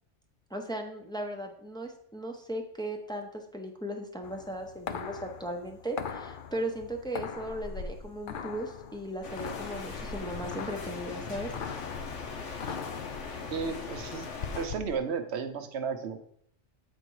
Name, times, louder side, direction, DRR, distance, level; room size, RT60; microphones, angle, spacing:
voice 1, 0.5-11.5 12.7-12.8, right 1 dB, 5° left, 2 dB, 0.6 m, -37 dB
sound 1, 4.2-15.0, left 6 dB, 55° left, 0.6 m, -41 dB
sound 2, 9.2-14.7, left 5 dB, 75° left, 1.3 m, -39 dB
voice 2, 13.5-14.3 14.5-16.2, right 5 dB, 65° right, 8 dB, 0.9 m, -33 dB
8.0 x 4.5 x 4.6 m, 0.67 s
omnidirectional pair, 1.3 m